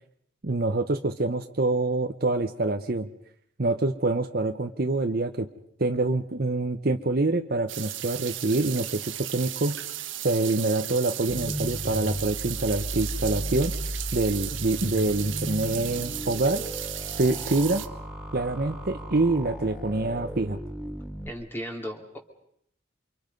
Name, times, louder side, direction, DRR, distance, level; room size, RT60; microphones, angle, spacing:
voice 1, 0.4-3.1 3.6-5.5 5.8-9.8 10.2-13.7 14.1-16.6 17.2-17.8 18.3-20.6, right 2 dB, 50° right, 6 dB, 0.9 m, -26 dB
sound 1, 7.7-17.9, right 13 dB, 75° right, 1.3 m, -35 dB
sound 2, 11.3-21.3, equal, 5° right, 3.4 m, -35 dB
voice 2, 21.3-22.2, equal, 10° left, 2 dB, 2.5 m, -35 dB
28.5 x 25.0 x 5.3 m, 0.71 s
head